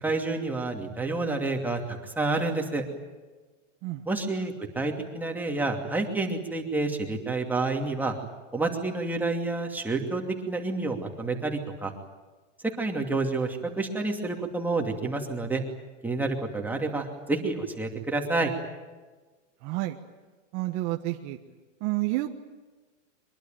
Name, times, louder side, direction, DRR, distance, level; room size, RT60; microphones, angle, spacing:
voice 1, 0.0-2.8 4.1-8.1 8.5-11.9 12.6-15.6 16.0-18.5, right 3 dB, 5° right, 2 dB, 2.7 m, -29 dB
voice 2, 19.6-20.0 20.5-21.4 21.8-22.3, right 18 dB, 40° right, 4 dB, 1.4 m, -29 dB
23.5 x 22.5 x 9.2 m, 1.3 s
supercardioid pair, 145°, 38 cm